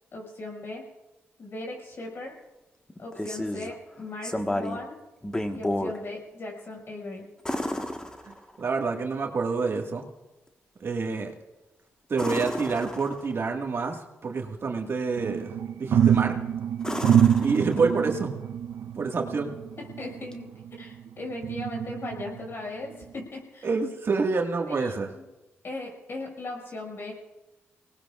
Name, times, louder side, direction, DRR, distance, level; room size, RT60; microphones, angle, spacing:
voice 1, 0.1-0.8 1.4-2.3 3.0-5.0 5.5-7.3 20.0-20.5 20.8-23.7 24.7-25.2 25.6-27.1, left 2 dB, 55° left, -1 dB, 6.1 m, -38 dB
sound 1, 2.9-3.7 4.2-4.9 5.2-6.0 7.4-8.7 12.1-13.4 15.9-16.3 16.8-18.2 20.3-20.4, left 1 dB, 15° left, 1.5 m, -32 dB
voice 2, 8.3-10.0 10.8-11.3 12.1-15.5 15.8-16.3 17.4-18.3 19.0-19.5 23.6-25.1, right 4 dB, 55° right, 2 dB, 1.8 m, -27 dB
sound 2, 15.2-20.9 21.4-22.5 23.0-23.2, right 9 dB, 70° right, 0.6 m, -26 dB
24.0 x 19.0 x 2.5 m, 1.0 s
cardioid pair, 60°, 5 cm